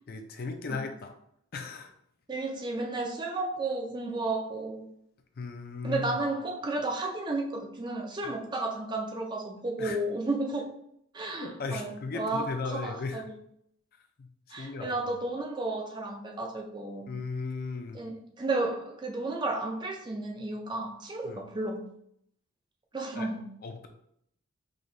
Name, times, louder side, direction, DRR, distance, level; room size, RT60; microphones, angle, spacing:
voice 1, 0.1-1.1 1.5-1.9 5.4-6.1 9.8-10.0 11.4-13.2 14.2-14.3 14.6-14.9 17.1-18.0 21.2-21.4 23.2-23.3 23.6-23.9, left 4 dB, 45° left, 5 dB, 0.4 m, -36 dB
voice 2, 2.3-4.9 5.8-10.7 11.1-13.4 14.5-17.1 17.9-21.8 22.9-23.4, right 2 dB, 20° right, 2 dB, 0.4 m, -33 dB
4.9 x 2.9 x 2.6 m, 0.71 s
head